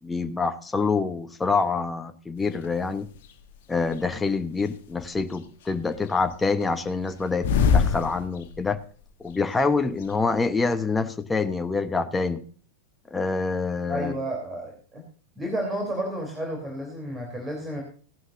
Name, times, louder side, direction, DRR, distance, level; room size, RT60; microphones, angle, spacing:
voice 1, 0.0-3.1 3.7-8.8 9.2-12.4 13.1-14.1, left 4 dB, 10° left, 10 dB, 1.1 m, -26 dB
sound 1, 2.5-2.7 3.2-4.1 4.6-5.4 5.7-8.8 9.1-9.2 9.3-10.1, left 6 dB, 55° left, 1.2 m, -25 dB
voice 2, 13.9-15.0 15.4-17.8, right 1 dB, 15° right, 1 dB, 3.5 m, -31 dB
16.0 x 11.5 x 2.7 m, 0.42 s
figure-of-eight pair, 90°, 0 cm